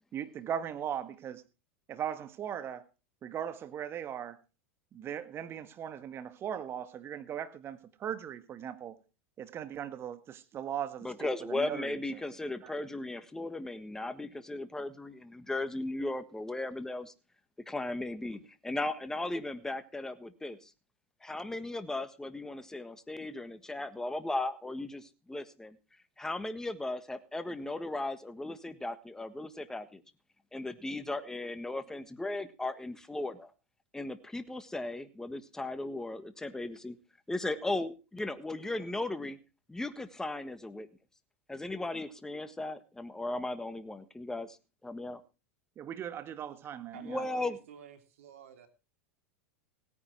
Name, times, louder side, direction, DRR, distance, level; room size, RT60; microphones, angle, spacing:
voice 1, 0.1-1.4 1.9-2.8 3.2-4.4 4.9-9.0 9.4-12.0 12.6-12.7 45.8-47.2, right 9 dB, 35° right, 1.6 m, -39 dB
voice 2, 11.0-17.1 17.7-20.7 21.2-25.8 26.2-30.0 30.5-33.5 33.9-37.0 37.3-39.4 39.7-40.9 41.5-44.6 44.8-45.2 47.0-47.6, left 2 dB, 5° left, 1.5 m, -36 dB
voice 3, 46.9-48.7, right 9 dB, 80° right, 2.9 m, -51 dB
17.0 x 9.9 x 4.5 m
hypercardioid pair, 110°, 7 cm